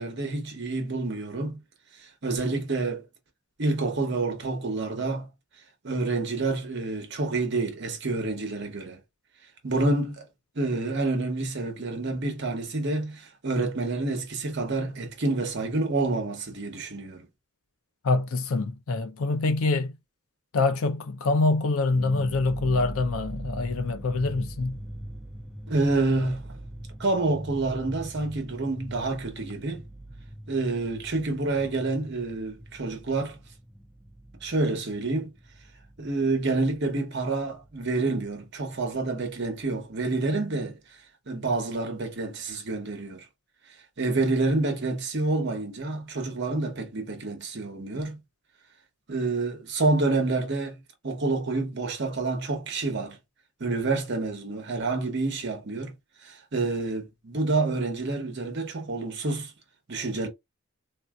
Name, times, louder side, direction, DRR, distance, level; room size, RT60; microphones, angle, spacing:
voice 1, 0.0-1.6 2.0-3.0 3.6-5.3 5.8-9.0 9.6-10.3 10.6-17.3 25.7-26.6 27.0-29.8 30.5-33.4 34.4-35.3 36.0-40.8 41.3-43.3 44.0-48.2 49.1-53.2 53.6-55.9 56.2-59.5 59.9-60.3, right 3 dB, 50° right, 0.8 m, -28 dB
voice 2, 18.0-20.0 20.5-24.8, left 3 dB, 70° left, 0.5 m, -25 dB
sound 1, 21.9-37.0 37.2-38.4 38.7-38.8 39.2-39.8, right 1 dB, ahead, 0.3 m, -42 dB
3.4 x 2.6 x 2.2 m
head